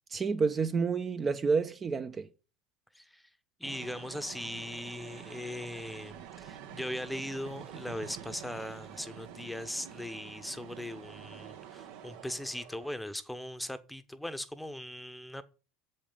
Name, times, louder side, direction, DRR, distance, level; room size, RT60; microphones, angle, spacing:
voice 1, 0.1-2.3, right 5 dB, 30° right, 0.7 m, -29 dB
voice 2, 2.9-3.3 3.6-15.4, left 1 dB, 5° left, 0.9 m, -39 dB
sound 1, 3.6-12.9, right 10 dB, 65° right, 0.9 m, -47 dB
7.3 x 5.4 x 7.3 m
hypercardioid pair, 80°, 0 cm